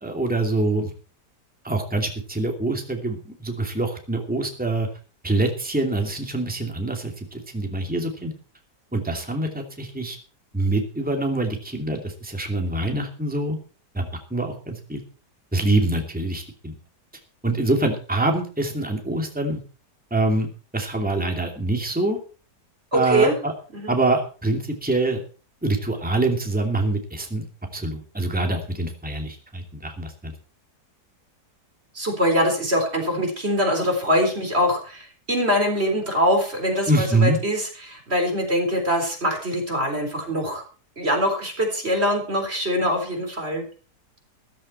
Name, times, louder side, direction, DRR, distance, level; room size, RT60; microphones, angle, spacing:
voice 1, 0.0-0.9 1.6-4.9 5.2-8.3 8.9-10.2 10.5-13.6 13.9-15.0 15.5-16.7 17.4-19.6 20.1-20.5 20.7-22.2 22.9-23.5 23.9-25.2 25.6-27.4 27.7-30.3 36.9-37.4, right 2 dB, 5° right, 3 dB, 2.5 m, -25 dB
voice 2, 22.9-23.4 23.7-24.0 31.9-40.6 41.0-43.6, equal, 35° right, 3 dB, 4.2 m, -23 dB
14.5 x 13.0 x 4.3 m, 0.38 s
omnidirectional pair, 1.8 m